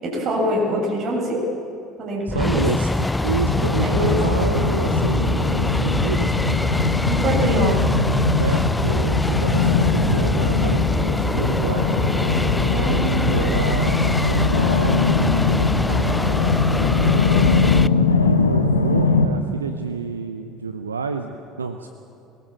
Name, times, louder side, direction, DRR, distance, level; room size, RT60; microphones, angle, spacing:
voice 1, 0.0-1.4 2.0-2.6 3.8-4.1 7.1-7.8 12.7-13.6, equal, 45° right, -2 dB, 7.2 m, -25 dB
sound 1, 2.3-17.9, left 2 dB, 10° left, 0.5 m, -23 dB
voice 2, 2.3-6.3 7.1-7.8 8.4-11.9 12.8-17.5 17.9-21.9, right 5 dB, 80° right, 7 dB, 0.8 m, -29 dB
sound 2, 3.4-19.3, left 4 dB, 75° left, 1.4 m, -21 dB
22.0 x 21.0 x 7.5 m, 2.6 s
figure-of-eight pair, 60°, 0 cm